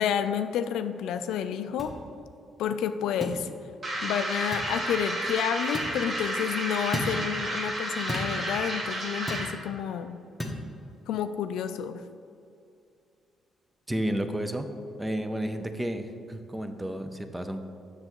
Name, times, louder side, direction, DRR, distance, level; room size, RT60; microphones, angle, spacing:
voice 1, 0.0-1.9 2.6-3.5 4.0-10.2 11.1-12.0, left 8 dB, 85° left, 10 dB, 0.3 m, -30 dB
sound 1, 1.8-1.9 3.2-3.4 4.5-4.7 5.7-6.0 6.9-7.2 8.1-8.4 9.3-9.5 10.4-10.6, left 1 dB, 5° left, 1.1 m, -33 dB
sound 2, 3.8-9.6, right 1 dB, 40° right, 1.4 m, -32 dB
voice 2, 13.9-14.7 15.0-17.6, right 1 dB, 10° right, 7 dB, 0.5 m, -31 dB
7.7 x 6.5 x 3.0 m, 2.5 s
cardioid pair, 90°, 0 cm